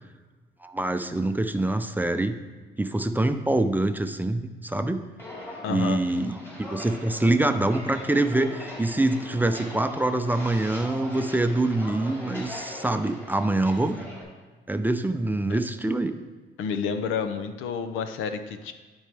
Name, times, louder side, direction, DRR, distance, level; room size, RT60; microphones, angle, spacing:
voice 1, 0.6-2.4 2.8-5.0 5.7-14.0 14.7-16.2, right 2 dB, 10° right, 8 dB, 0.5 m, -25 dB
Walk footsteps, 5.2-14.2, left 1 dB, 10° left, 2.2 m, -40 dB
voice 2, 5.6-6.0 15.5-15.6 16.6-18.7, left 6 dB, 90° left, 9 dB, 0.6 m, -30 dB
12.0 x 4.5 x 3.4 m, 1.3 s
cardioid pair, 90°, 20 cm